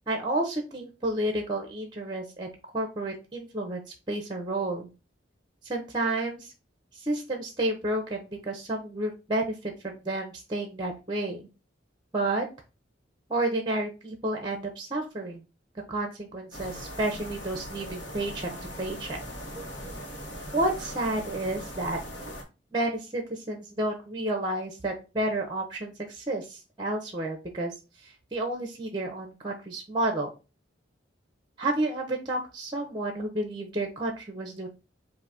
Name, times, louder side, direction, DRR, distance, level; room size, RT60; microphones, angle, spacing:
voice 1, 0.1-2.5 2.7-4.9 5.6-6.5 6.9-11.4 12.1-12.5 13.3-15.4 15.9-18.5 18.8-19.2 20.5-22.0 22.7-27.7 28.0-30.3 31.6-34.7, right 1 dB, 25° right, 3 dB, 0.7 m, -31 dB
sound 1, 16.5-22.4, equal, 70° left, 1.3 m, -40 dB
3.9 x 2.6 x 4.8 m, 0.30 s
head